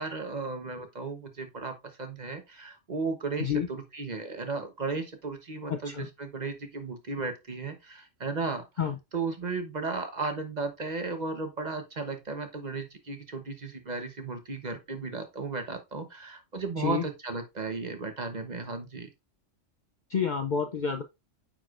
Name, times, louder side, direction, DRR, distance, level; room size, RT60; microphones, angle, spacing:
voice 1, 0.0-8.6 9.1-19.1, right 4 dB, 40° right, 1.0 m, -35 dB
voice 2, 5.7-6.1 8.8-8.9 16.8-17.1 20.1-21.0, left 7 dB, 55° left, 0.5 m, -29 dB
8.7 x 4.8 x 2.4 m
omnidirectional pair, 1.3 m